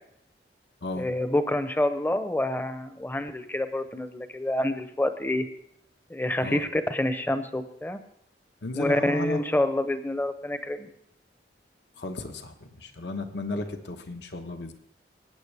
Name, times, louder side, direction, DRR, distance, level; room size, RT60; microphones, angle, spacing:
voice 1, 0.9-5.5 6.1-8.0 8.8-10.9, left 1 dB, 10° left, 10 dB, 0.7 m, -27 dB
voice 2, 8.6-9.4 12.0-14.7, left 2 dB, 75° left, 6 dB, 1.1 m, -34 dB
19.0 x 9.0 x 3.4 m, 0.73 s
head